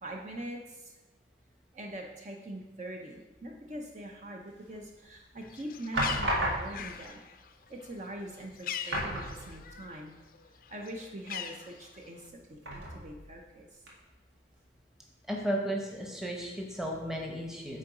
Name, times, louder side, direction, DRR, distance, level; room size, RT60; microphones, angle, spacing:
voice 1, 0.0-0.9 1.7-7.2 7.7-10.2 10.7-13.8, right 1 dB, 40° right, 1 dB, 0.7 m, -43 dB
sound 1, 4.7-5.2 5.9-7.0 8.0-8.1 8.4-8.5 8.9-9.9 10.2-10.3 12.6-13.3 13.9-14.0, right 1 dB, 90° right, 1.9 m, -33 dB
Bird, 5.4-10.0 10.3-12.3, left 8 dB, 50° left, 0.4 m, -42 dB
voice 2, 15.3-17.8, equal, 5° right, 0 dB, 1.0 m, -34 dB
8.5 x 3.8 x 4.9 m, 1.1 s
head